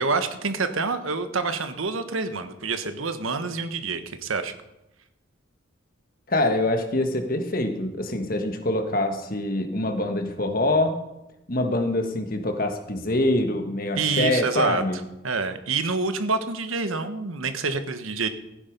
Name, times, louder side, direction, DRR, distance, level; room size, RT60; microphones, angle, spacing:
voice 1, 0.0-4.5 14.0-14.8 15.2-18.3, right 4 dB, 90° right, 9 dB, 1.3 m, -27 dB
voice 2, 6.3-11.0 11.5-15.0, left 1 dB, 45° left, 6 dB, 1.6 m, -25 dB
15.5 x 9.8 x 5.3 m, 0.92 s
head